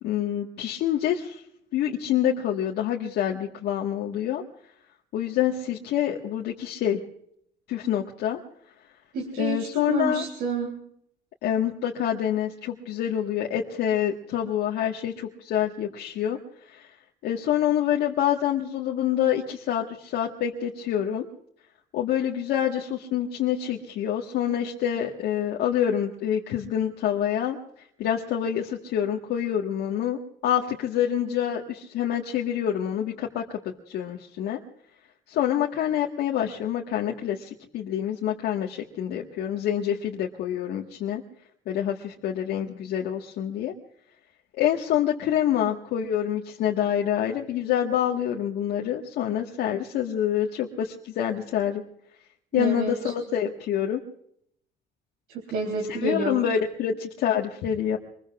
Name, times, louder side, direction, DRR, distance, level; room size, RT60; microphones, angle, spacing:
voice 1, 0.0-1.4 1.7-4.4 5.1-7.0 7.7-8.4 9.4-10.2 11.4-16.4 16.7-16.9 17.2-21.3 21.9-27.6 28.0-33.4 33.9-34.6 35.3-41.2 41.7-43.7 44.5-51.8 52.5-54.0 55.9-58.0, left 10 dB, 80° left, -1 dB, 1.6 m, -26 dB
voice 2, 9.1-10.7 52.5-52.9 55.3-56.4, right 3 dB, 75° right, 1 dB, 3.7 m, -29 dB
25.5 x 22.0 x 2.5 m, 0.68 s
cardioid pair, 110°, 17 cm